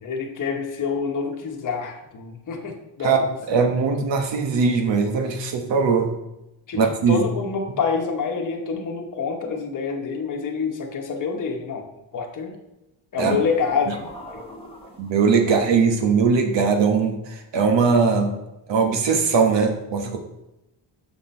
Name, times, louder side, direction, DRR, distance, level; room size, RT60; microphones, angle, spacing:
voice 1, 0.0-3.3 6.7-6.8 7.1-11.8 12.1-12.6 13.1-14.0, left 5 dB, 40° left, 1 dB, 1.1 m, -27 dB
voice 2, 3.5-6.1 6.8-7.2 13.2-13.4 15.0-17.2 17.5-18.3 18.7-20.2, right 5 dB, 70° right, 4 dB, 1.2 m, -20 dB
sound 1, 13.2-15.5, left 4 dB, 10° left, 1.1 m, -38 dB
6.3 x 5.8 x 4.3 m, 0.93 s
wide cardioid pair, 170°, 45 cm